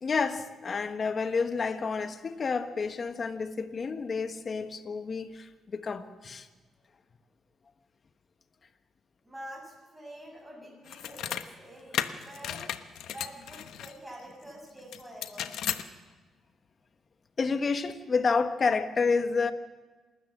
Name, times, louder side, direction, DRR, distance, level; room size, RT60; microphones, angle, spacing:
voice 1, 0.0-6.5 17.4-19.5, left 4 dB, 40° left, 1.5 m, -29 dB
voice 2, 9.2-12.6 13.1-15.5, equal, 10° right, 7.6 m, -46 dB
sound 1, 10.9-11.5 11.9-13.9 14.9-15.8, left 10 dB, 80° left, 1.0 m, -34 dB
28.0 x 13.0 x 7.6 m
cardioid pair, 90°, 0 cm